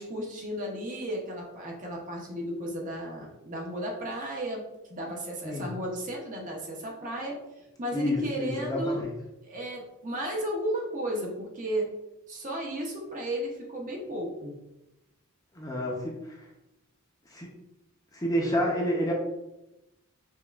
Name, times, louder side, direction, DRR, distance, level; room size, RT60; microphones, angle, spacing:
voice 1, 0.0-7.4 7.8-9.1 9.4-12.0 12.3-14.5, right 1 dB, 35° right, -1 dB, 0.7 m, -34 dB
voice 2, 7.9-9.1 15.5-16.0 16.3-16.4 17.3-17.5 18.1-19.1, equal, 15° left, -2 dB, 0.6 m, -29 dB
5.3 x 2.3 x 2.3 m, 0.94 s
head